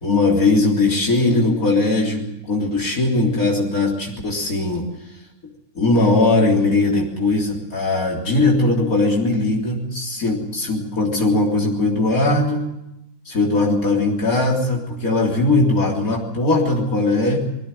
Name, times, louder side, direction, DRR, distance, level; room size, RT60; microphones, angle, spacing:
voice 1, 0.0-4.9 5.8-12.7 13.3-17.4, left 2 dB, 85° left, -2 dB, 4.0 m, -19 dB
21.5 x 16.0 x 9.1 m, 0.88 s
omnidirectional pair, 1.4 m